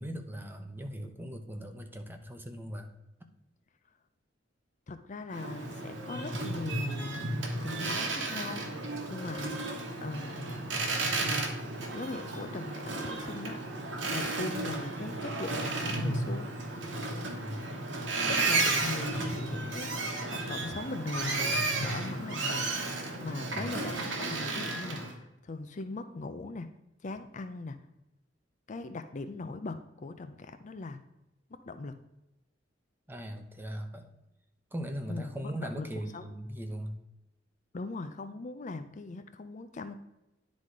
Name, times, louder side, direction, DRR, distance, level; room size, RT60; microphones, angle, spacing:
voice 1, 0.0-2.9 17.2-17.6 23.5-23.7 33.1-34.1 34.7-37.0, equal, 10° right, 5 dB, 0.8 m, -39 dB
voice 2, 4.9-7.3 7.6-9.6 10.0-10.6 11.9-16.5 18.3-22.7 23.2-26.7 27.0-27.8 28.7-31.0 31.5-32.0 35.1-35.9 36.1-36.3 37.7-40.0, left 3 dB, 40° left, 9 dB, 0.5 m, -40 dB
Boat Water vehicle, 5.3-25.1, right 2 dB, 70° right, 1.5 m, -33 dB
9.9 x 4.1 x 4.8 m, 0.92 s
head